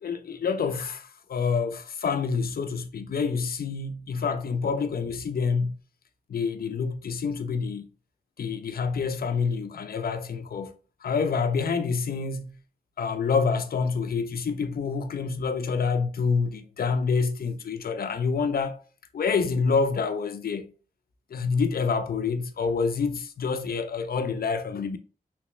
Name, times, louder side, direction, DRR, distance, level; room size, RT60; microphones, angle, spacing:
voice 1, 0.0-5.7 6.3-7.8 8.4-10.7 11.0-12.6 13.0-18.8 19.1-20.7 21.3-25.0, left 5 dB, 75° left, 0.5 m, -27 dB
3.1 x 3.0 x 3.1 m
wide cardioid pair, 80°, 16 cm